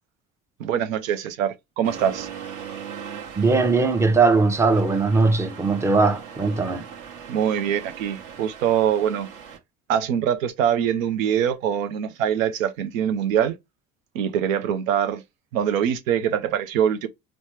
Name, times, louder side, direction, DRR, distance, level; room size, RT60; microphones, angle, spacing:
voice 1, 0.6-2.3 7.3-9.3 9.9-13.6 14.1-15.2 15.5-17.1, right 9 dB, 90° right, 0.5 m, -23 dB
Accelerating revving vroom, 1.8-9.6, right 7 dB, 50° right, 1.0 m, -39 dB
voice 2, 3.4-6.8, right 3 dB, 5° right, 0.6 m, -20 dB
4.1 x 2.1 x 3.1 m
hypercardioid pair, 75°, 39 cm